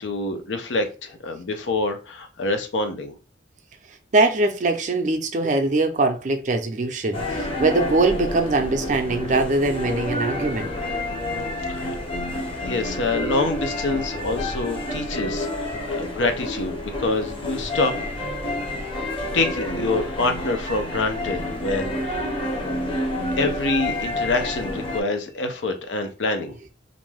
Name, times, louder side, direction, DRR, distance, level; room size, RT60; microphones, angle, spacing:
voice 1, 0.0-3.1 11.7-11.9 12.7-17.9 19.3-22.3 23.4-26.6, left 3 dB, 75° left, 0.5 m, -26 dB
voice 2, 4.1-10.7, right 2 dB, 40° right, 0.4 m, -22 dB
sound 1, 7.1-25.0, left 1 dB, 30° left, 0.7 m, -29 dB
2.5 x 2.2 x 3.2 m
head